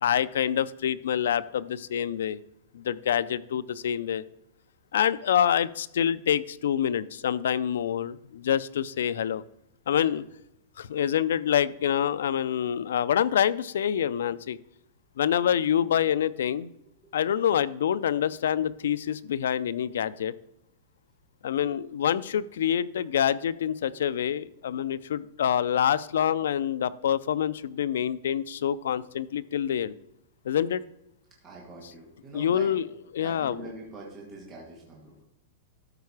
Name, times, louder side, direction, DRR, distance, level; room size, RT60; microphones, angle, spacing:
voice 1, 0.0-2.4 2.7-4.2 4.9-9.4 9.9-10.2 10.8-14.6 15.2-16.7 17.1-20.3 21.4-29.9 30.4-30.8 32.3-32.9 33.1-33.7, left 9 dB, 85° left, 18 dB, 0.4 m, -26 dB
voice 2, 31.4-32.7 33.2-35.2, right 2 dB, 15° right, -3 dB, 1.9 m, -44 dB
13.0 x 4.7 x 4.8 m, 0.83 s
supercardioid pair, 175°, 0 cm